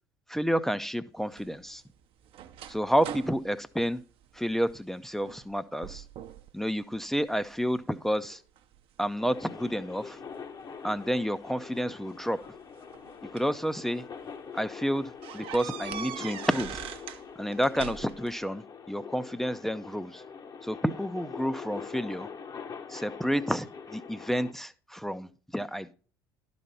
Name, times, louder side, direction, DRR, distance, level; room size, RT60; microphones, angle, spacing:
voice 1, 0.3-1.8 2.7-4.0 4.3-6.0 6.5-8.4 9.0-10.2 10.8-12.4 13.3-14.0 14.5-16.9 17.4-20.2 20.6-22.3 22.9-25.9, equal, 5° left, 11 dB, 0.5 m, -30 dB
sound 1, 1.3-4.8 5.2-5.5 5.8-6.5 6.9-7.7 8.3-9.7 10.9-11.0 12.2-13.6 14.1-14.3 14.6-14.7 15.2-17.2 17.5-18.3, right 10 dB, 50° right, 0.7 m, -42 dB
sound 2, 9.2-24.5, left 6 dB, 35° left, 0.9 m, -44 dB
11.5 x 4.2 x 5.2 m, 0.38 s
figure-of-eight pair, 60°, 12 cm